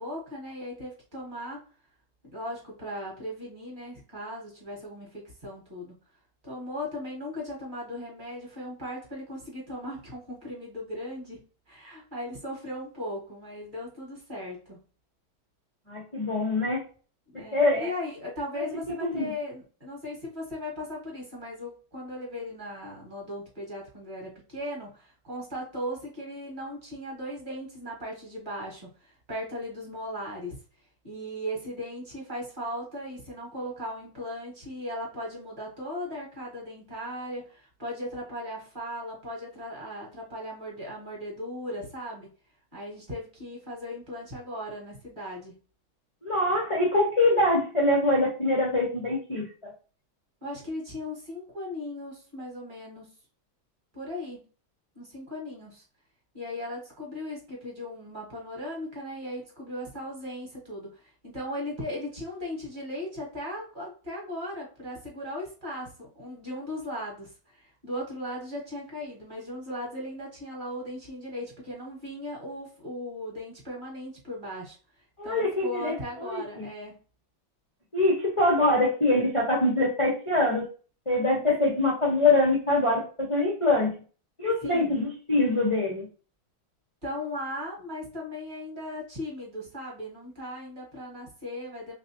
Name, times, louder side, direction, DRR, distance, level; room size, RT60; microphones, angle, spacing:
voice 1, 0.0-1.6 2.2-5.9 6.4-11.4 11.7-14.8 17.3-30.5 31.0-42.3 42.7-45.5 50.4-53.1 53.9-54.4 54.9-55.8 56.3-74.8 75.2-77.0 81.6-81.8 84.6-85.0 87.0-91.9, left 1 dB, 25° right, -3 dB, 1.3 m, -37 dB
voice 2, 15.9-16.8 17.5-17.9 19.0-19.3 46.2-49.7 75.2-75.9 76.2-76.7 77.9-80.7 81.1-83.9 84.4-86.1, left 2 dB, 35° left, -4 dB, 0.4 m, -24 dB
3.4 x 3.2 x 2.8 m, 0.38 s
omnidirectional pair, 2.3 m